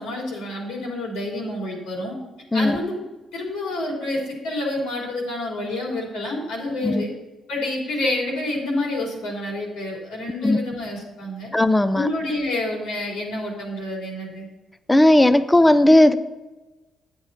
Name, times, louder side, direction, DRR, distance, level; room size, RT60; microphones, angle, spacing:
voice 1, 0.0-2.1 2.5-3.0 3.3-7.1 7.5-11.5 11.9-14.5, left 2 dB, 90° left, -1 dB, 3.3 m, -28 dB
voice 2, 11.5-12.1 14.9-16.1, left 1 dB, 15° left, 12 dB, 0.6 m, -16 dB
9.5 x 9.0 x 4.0 m, 1.1 s
cardioid pair, 90°, 0 cm